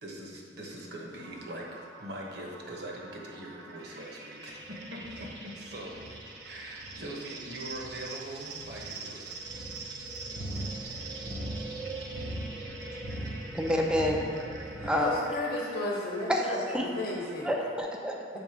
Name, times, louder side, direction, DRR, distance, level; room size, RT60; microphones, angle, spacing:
voice 1, 0.0-6.0 6.4-9.4, right 1 dB, 65° right, -1 dB, 1.1 m, -42 dB
sound 1, 1.2-17.8, right 3 dB, 90° right, 0.8 m, -45 dB
sound 2, 4.5-14.9, right 1 dB, 35° right, 0.9 m, -40 dB
voice 2, 13.5-14.3 14.8-15.1 16.3-16.9 17.4-18.4, equal, 5° right, 1 dB, 0.5 m, -28 dB
voice 3, 14.8-17.5, left 1 dB, 50° left, -3 dB, 1.0 m, -33 dB
7.2 x 3.7 x 5.0 m, 2.1 s
head